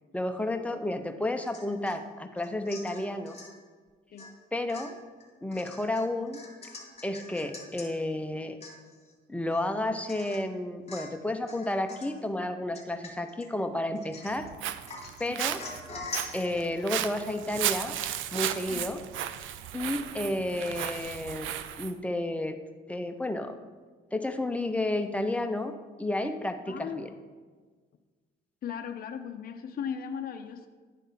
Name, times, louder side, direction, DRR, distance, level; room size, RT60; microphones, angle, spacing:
voice 1, 0.1-3.4 4.5-5.0 5.4-6.4 7.0-8.6 9.3-14.5 15.2-15.6 16.3-18.0 18.3-19.0 19.7-21.5 21.8-22.6 22.9-23.6 24.1-25.7 26.0-27.1, left 1 dB, 5° left, 6 dB, 0.7 m, -31 dB
Domestic sounds home sounds / Chink clink / Drip, 1.4-2.0 2.4-3.6 4.2-4.4 4.7-7.9 8.3-8.4 8.6-9.1 9.6-9.7 10.1-10.5 10.9-11.2 11.5-12.2 12.7-13.5 14.0-14.5 14.9-18.2 18.5-18.6, left 3 dB, 30° left, 1.8 m, -44 dB
Walk footsteps, 14.3-21.9, right 11 dB, 80° right, 0.5 m, -35 dB
voice 2, 26.7-27.2 28.6-30.7, left 7 dB, 50° left, 6 dB, 0.6 m, -37 dB
10.0 x 3.6 x 5.6 m, 1.4 s
cardioid pair, 90°, 20 cm